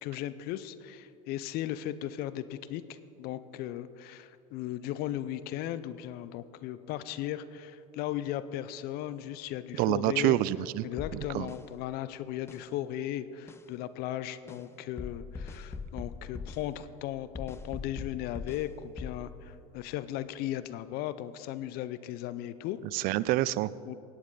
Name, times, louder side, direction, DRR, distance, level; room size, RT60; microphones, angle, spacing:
voice 1, 0.0-2.8 3.2-10.4 10.8-22.8 23.8-23.9, left 12 dB, 55° left, 14 dB, 0.6 m, -36 dB
voice 2, 9.8-10.8 11.1-11.5 22.9-23.7, right 15 dB, 50° right, 19 dB, 0.4 m, -27 dB
sound 1, 11.0-11.6 12.5-12.6 13.5-13.6 14.5-14.6 15.0-16.6 17.3-18.7 19.0-19.3, left 4 dB, 15° left, 0.6 m, -40 dB
18.0 x 8.7 x 3.9 m, 2.7 s
hypercardioid pair, 80°, 20 cm